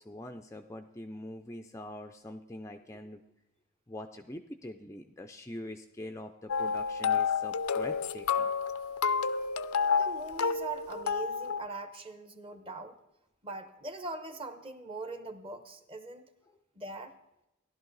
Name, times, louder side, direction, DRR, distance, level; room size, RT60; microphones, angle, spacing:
voice 1, 0.0-3.2 3.9-8.5 12.5-12.6, left 1 dB, 15° left, 5 dB, 0.4 m, -44 dB
sound 1, 6.5-11.7, left 6 dB, 80° left, 0.5 m, -30 dB
voice 2, 10.0-13.0 13.4-16.2 16.8-17.1, right 3 dB, 25° right, 9 dB, 0.9 m, -41 dB
15.5 x 11.5 x 4.0 m, 0.93 s
head